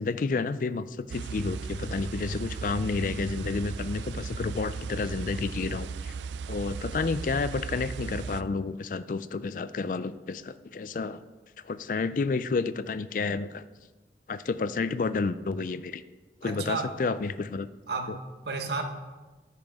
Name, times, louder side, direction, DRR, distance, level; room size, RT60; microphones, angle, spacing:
voice 1, 0.0-6.1 6.5-11.2 11.6-13.6 14.3-16.0 16.4-17.7 18.1-18.2, left 4 dB, 50° left, 14 dB, 0.3 m, -30 dB
sound 1, 1.1-8.4, right 5 dB, 85° right, 0.3 m, -36 dB
voice 2, 16.4-16.9 17.9-18.8, right 4 dB, 70° right, 5 dB, 1.0 m, -32 dB
10.5 x 9.0 x 3.6 m, 1.3 s
head